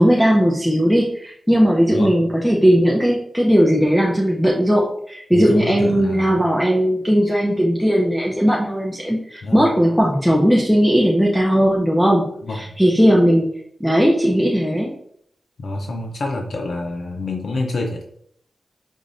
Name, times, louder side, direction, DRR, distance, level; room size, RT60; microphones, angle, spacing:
voice 1, 0.0-12.3 12.5-13.5 13.8-14.9, equal, 5° left, -2 dB, 0.6 m, -17 dB
voice 2, 1.9-2.2 5.3-6.4 9.4-9.7 12.4-12.8 15.6-18.0, left 2 dB, 70° left, 1 dB, 0.6 m, -27 dB
5.3 x 3.0 x 2.6 m, 0.66 s
wide cardioid pair, 145°, 0 cm